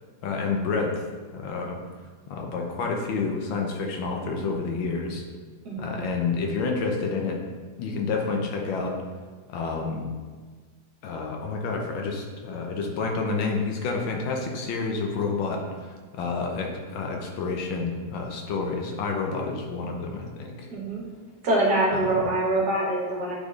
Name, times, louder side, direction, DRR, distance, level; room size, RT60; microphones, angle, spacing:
voice 1, 0.2-1.0 1.3-1.8 2.3-5.2 5.8-7.4 7.8-9.0 9.5-10.1 11.0-20.7 21.9-22.2, left 4 dB, 90° left, 1 dB, 1.6 m, -29 dB
voice 2, 5.7-6.0 20.7-21.0 21.4-23.4, right 1 dB, 60° right, -3 dB, 1.7 m, -24 dB
8.3 x 4.2 x 3.1 m, 1.4 s
omnidirectional pair, 2.0 m